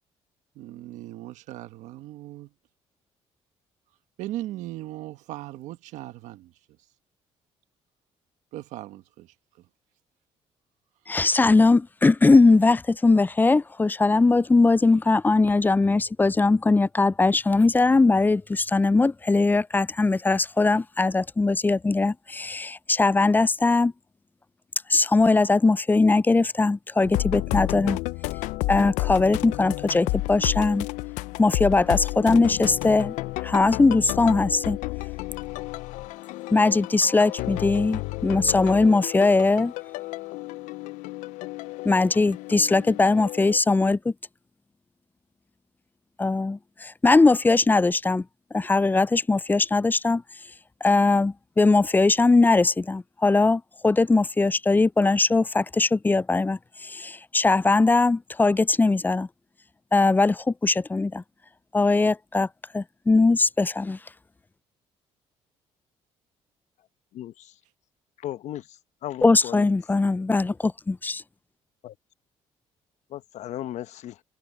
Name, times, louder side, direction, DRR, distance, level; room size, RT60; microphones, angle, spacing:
voice 1, 0.5-2.5 4.2-6.5 8.5-9.3, right 15 dB, 80° right, 1.5 m, -38 dB
voice 2, 11.1-23.9 24.9-28.0 28.7-30.9 31.4-33.2 33.4-34.8 36.5-39.7 41.8-44.1 46.2-48.2 48.5-50.2 50.8-59.3 59.9-61.2 61.7-62.5 62.7-64.0 69.2-71.2, left 3 dB, 15° left, 0.3 m, -20 dB
sound 1, 27.0-43.6, left 20 dB, 85° left, 0.6 m, -31 dB
voice 3, 67.1-67.6 68.2-69.7 71.8-72.0 73.1-74.2, left 13 dB, 70° left, 1.0 m, -36 dB
supercardioid pair, 70°, 12 cm